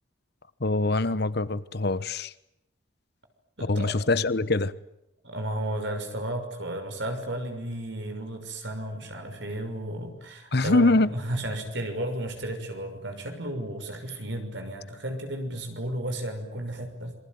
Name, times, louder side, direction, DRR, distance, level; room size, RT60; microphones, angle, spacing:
voice 1, 0.6-2.3 3.6-4.7 10.5-11.1, left 2 dB, 55° left, 1.1 m, -24 dB
voice 2, 3.6-4.0 5.2-17.1, right 1 dB, 65° right, 6.3 m, -33 dB
27.0 x 23.0 x 9.5 m
head